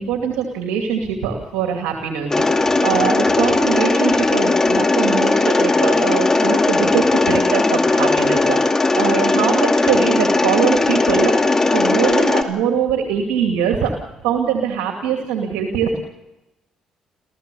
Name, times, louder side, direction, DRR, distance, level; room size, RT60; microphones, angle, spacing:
voice 1, 0.0-13.9 14.2-16.1, right 7 dB, 85° right, 2 dB, 2.5 m, -22 dB
Mechanisms, 2.3-12.4, left 3 dB, 25° left, 2.4 m, -17 dB
28.0 x 15.0 x 7.0 m, 0.97 s
supercardioid pair, 65°, 2 cm